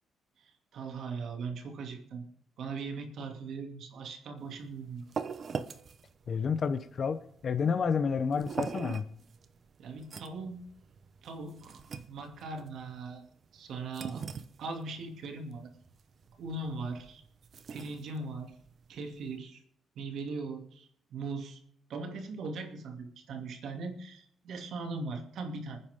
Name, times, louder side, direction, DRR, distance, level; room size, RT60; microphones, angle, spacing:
voice 1, 0.4-2.2 2.6-5.0 9.8-10.7 11.2-13.2 13.5-14.2 14.6-15.7 16.4-17.2 17.7-18.5 18.9-19.6 20.0-21.6 21.9-25.8, right 3 dB, 70° right, 4 dB, 2.5 m, -39 dB
sound 1, 4.4-19.4, right 6 dB, 45° right, 0.9 m, -43 dB
voice 2, 6.3-9.1, left 6 dB, 40° left, 11 dB, 0.8 m, -30 dB
26.0 x 9.8 x 3.6 m, 0.66 s
cardioid pair, 140°, 0 cm